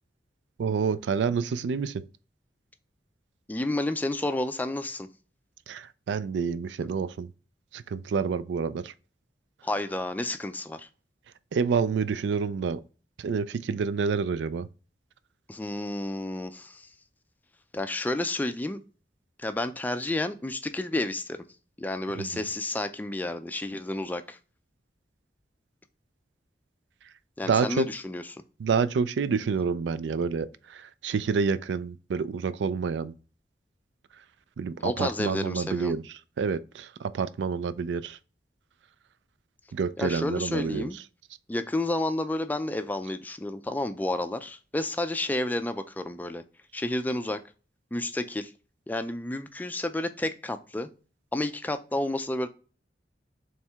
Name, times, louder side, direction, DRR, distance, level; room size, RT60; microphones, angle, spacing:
voice 1, 0.6-2.0 5.7-7.3 7.7-8.9 11.5-12.8 13.2-14.7 22.2-22.4 27.4-27.9 28.6-33.1 34.6-36.0 36.4-38.2 39.7-40.9, right 5 dB, 90° right, 0.4 m, -28 dB
voice 2, 3.5-5.1 9.6-10.9 15.5-16.9 17.7-18.8 19.4-21.4 21.8-24.4 27.4-28.4 34.8-35.9 40.0-41.0 41.5-46.4 46.7-47.4 47.9-48.5 48.9-50.9 51.3-52.5, left 1 dB, 10° left, 0.3 m, -31 dB
4.4 x 3.2 x 3.5 m
head